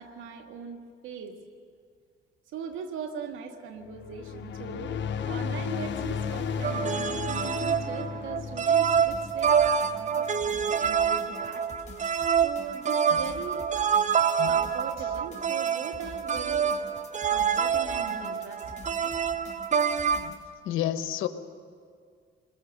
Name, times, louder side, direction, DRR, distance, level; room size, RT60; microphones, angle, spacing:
voice 1, 0.0-1.3 2.5-11.7 12.4-13.6 14.5-16.7 17.3-19.1, right 6 dB, 90° right, 4 dB, 2.0 m, -40 dB
sound 1, 3.8-10.5, left 6 dB, 65° left, 1.2 m, -34 dB
sound 2, 6.6-20.3, right 7 dB, 35° right, 0.9 m, -26 dB
sound 3, 8.8-20.4, left 2 dB, 35° left, 4.6 m, -47 dB
voice 2, 20.6-21.3, left 12 dB, 90° left, 10 dB, 1.2 m, -29 dB
27.5 x 21.0 x 6.6 m, 2.1 s
cardioid pair, 90°, 20 cm